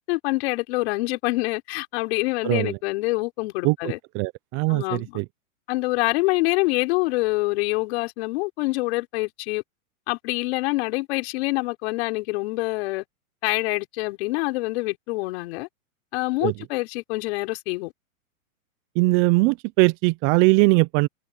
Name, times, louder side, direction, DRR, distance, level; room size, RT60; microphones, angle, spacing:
voice 1, 0.0-4.0 4.7-5.2 5.7-9.6 10.1-13.0 13.4-15.7 16.1-17.9, left 22 dB, 50° left, 5.0 m, -26 dB
voice 2, 2.4-2.8 3.6-5.2 16.4-16.5 19.0-21.1, right 25 dB, 30° right, 0.7 m, -21 dB
hypercardioid pair, 135°, 42 cm